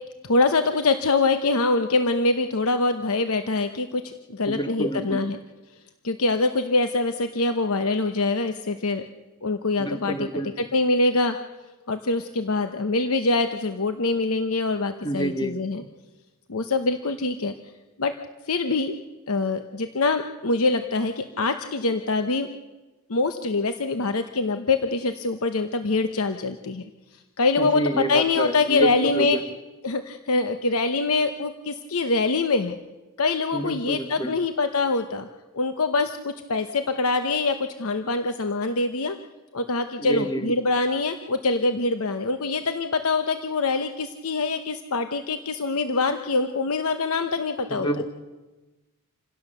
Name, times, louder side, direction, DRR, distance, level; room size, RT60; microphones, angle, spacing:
voice 1, 0.2-5.4 6.0-9.0 9.4-11.4 11.9-15.8 16.5-17.5 18.0-18.1 18.5-18.9 19.3-22.5 23.1-26.8 27.4-29.4 29.8-32.8 33.2-35.3 35.5-39.2 39.5-48.0, left 3 dB, 70° left, 8 dB, 0.9 m, -24 dB
voice 2, 4.5-5.3 9.8-10.5 15.0-15.6 27.6-28.9 29.2-29.4 33.5-34.3 40.0-40.5 47.7-48.0, right 1 dB, 20° left, 8 dB, 1.5 m, -28 dB
27.5 x 16.5 x 6.8 m, 1.2 s
head